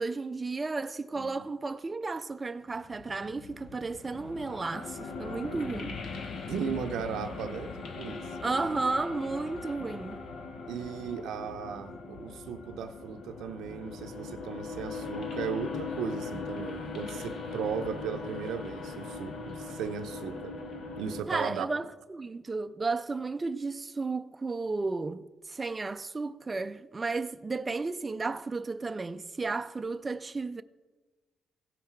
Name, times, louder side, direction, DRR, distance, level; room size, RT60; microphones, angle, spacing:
voice 1, 0.0-6.0 8.4-10.2 21.3-21.8 22.1-30.6, right 3 dB, 25° right, 0.4 m, -33 dB
sound 1, 2.7-21.2, left 4 dB, 65° left, 0.9 m, -40 dB
voice 2, 6.5-8.4 10.7-20.6 21.0-21.7, right 7 dB, 80° right, 0.6 m, -36 dB
16.0 x 5.6 x 4.5 m
cardioid pair, 90°, 0 cm